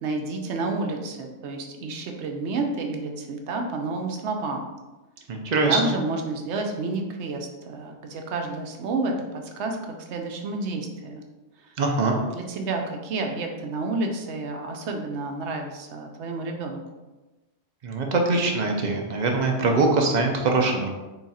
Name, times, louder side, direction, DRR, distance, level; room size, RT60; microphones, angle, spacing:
voice 1, 0.0-4.7 5.7-9.8 10.1-11.2 12.1-16.8, right 3 dB, 70° right, 3 dB, 0.9 m, -30 dB
voice 2, 5.3-5.9 11.8-12.1 17.8-20.9, right 3 dB, 50° right, 2 dB, 0.6 m, -22 dB
3.8 x 2.4 x 4.1 m, 1.1 s
omnidirectional pair, 1.2 m